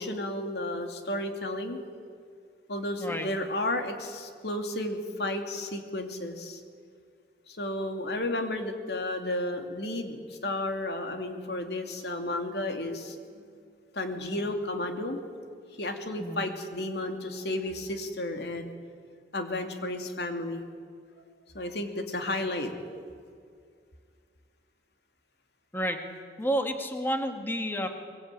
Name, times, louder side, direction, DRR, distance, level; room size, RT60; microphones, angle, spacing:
voice 1, 0.0-1.8 2.7-6.6 7.5-13.4 13.9-15.2 15.8-18.7 19.3-20.6 21.5-22.7, left 1 dB, 65° left, 5 dB, 2.7 m, -32 dB
voice 2, 26.4-27.9, equal, 10° left, 4 dB, 2.0 m, -30 dB
22.5 x 22.0 x 9.2 m, 2.2 s
head